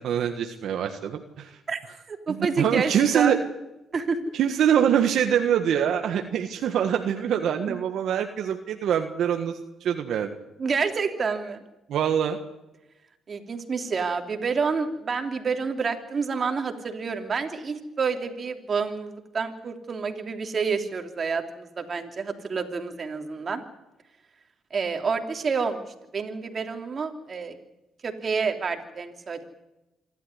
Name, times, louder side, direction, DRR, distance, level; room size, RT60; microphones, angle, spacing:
voice 1, 0.0-1.5 2.3-3.4 4.3-10.3 11.9-12.4, right 9 dB, 75° right, 5 dB, 1.6 m, -24 dB
voice 2, 2.1-3.3 3.9-4.3 7.7-7.8 10.6-11.6 13.3-23.6 24.7-25.8 26.1-27.6 28.0-29.4, right 5 dB, 40° right, 5 dB, 3.1 m, -28 dB
26.5 x 12.5 x 9.8 m, 0.97 s
cardioid pair, 90°, 0 cm